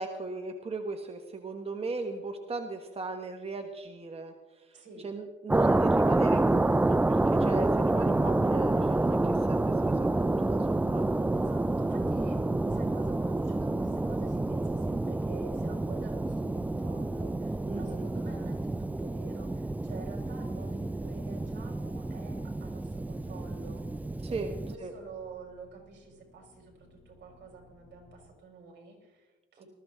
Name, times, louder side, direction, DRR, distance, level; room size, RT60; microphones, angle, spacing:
voice 1, 0.0-11.1 17.6-18.0 24.2-24.5 24.8-24.9, right 3 dB, 30° right, 5 dB, 1.2 m, -38 dB
voice 2, 4.7-5.1 11.3-29.6, right 4 dB, 60° right, 1 dB, 5.2 m, -49 dB
sound 1, 5.5-24.8, right 2 dB, 10° right, 0.3 m, -28 dB
sound 2, 19.4-28.3, equal, 35° left, 6.2 m, -58 dB
20.0 x 14.0 x 3.5 m, 1.3 s
cardioid pair, 90°, 20 cm